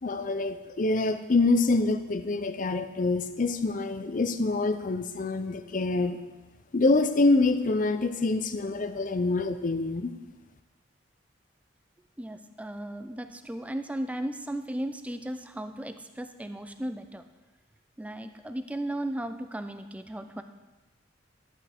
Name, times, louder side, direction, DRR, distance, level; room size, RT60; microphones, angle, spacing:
voice 1, 0.0-6.2 6.7-10.1, left 3 dB, 45° left, 9 dB, 0.6 m, -26 dB
voice 2, 12.2-17.2 18.0-20.4, right 1 dB, 5° right, 8 dB, 0.4 m, -35 dB
11.5 x 8.4 x 3.5 m, 1.2 s
head